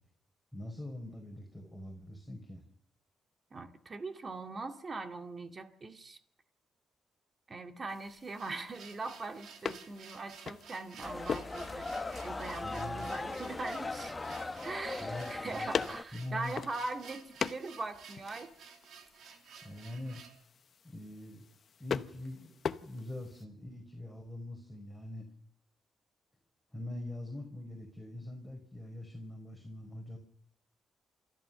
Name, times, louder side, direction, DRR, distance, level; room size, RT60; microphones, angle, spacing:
voice 1, 0.5-2.6 12.6-13.1 15.0-15.7 16.1-16.6 19.6-20.2 20.8-21.4 21.8-25.3 26.7-30.2, left 1 dB, ahead, 2 dB, 4.7 m, -43 dB
voice 2, 3.5-6.2 7.5-11.9 12.2-14.2 14.6-18.5, right 3 dB, 40° right, 5 dB, 2.1 m, -41 dB
sound 1, 7.9-23.4, left 7 dB, 55° left, 0.8 m, -43 dB
sound 2, 8.1-20.4, right 7 dB, 80° right, 2.3 m, -54 dB
sound 3, 11.0-16.0, left 3 dB, 25° left, 1.1 m, -39 dB
28.5 x 13.5 x 6.9 m, 0.80 s
cardioid pair, 85°, 0 cm